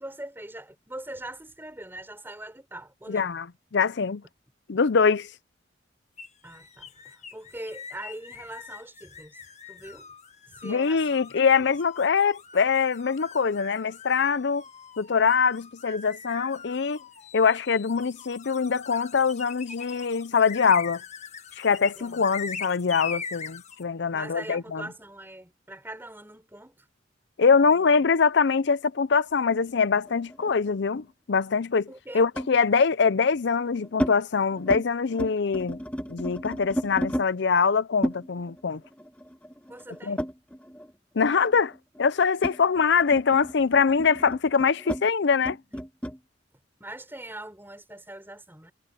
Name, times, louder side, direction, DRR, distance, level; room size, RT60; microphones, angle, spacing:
voice 1, 0.0-3.3 6.4-9.4 9.7-10.1 10.5-11.7 22.0-22.2 24.1-26.9 27.6-27.9 31.9-32.3 39.7-40.2 45.7-45.8 46.8-48.7, right 1 dB, 10° right, 5.2 m, -42 dB
voice 2, 3.1-3.5 3.7-4.2 4.7-5.3 10.6-14.6 15.0-17.0 17.3-21.0 21.6-24.8 27.4-31.9 32.1-35.8 36.1-38.8 40.1-40.2 41.2-41.7 42.0-45.6, left 5 dB, 65° left, 0.6 m, -23 dB
sound 1, 6.2-23.8, left 6 dB, 40° left, 1.6 m, -42 dB
sound 2, 29.5-31.1 32.4-32.6 33.3-34.1 34.5-34.8 35.1-37.3 38.0-40.9 41.2-46.2, equal, 5° left, 1.1 m, -33 dB
head